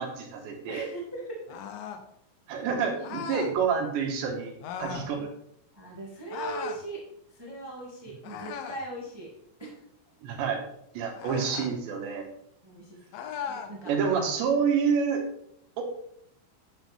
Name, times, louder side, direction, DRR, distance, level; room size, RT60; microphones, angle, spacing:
voice 1, 0.0-0.9 2.5-4.5 4.8-5.3 10.2-10.6 11.0-12.3 13.9-15.2 15.8-15.9, right 6 dB, 85° right, 1 dB, 3.9 m, -28 dB
voice 2, 0.7-1.4 5.7-7.0 7.3-9.3 9.6-9.8 12.6-13.0 13.4-13.9, right 2 dB, 10° right, -3 dB, 1.0 m, -39 dB
sound 1, 1.5-2.1 3.0-3.6 4.6-5.1 6.3-6.8 8.2-8.9 11.2-11.7 13.1-13.7, left 7 dB, 75° left, 2.1 m, -37 dB
10.5 x 8.0 x 3.7 m, 0.71 s
omnidirectional pair, 4.9 m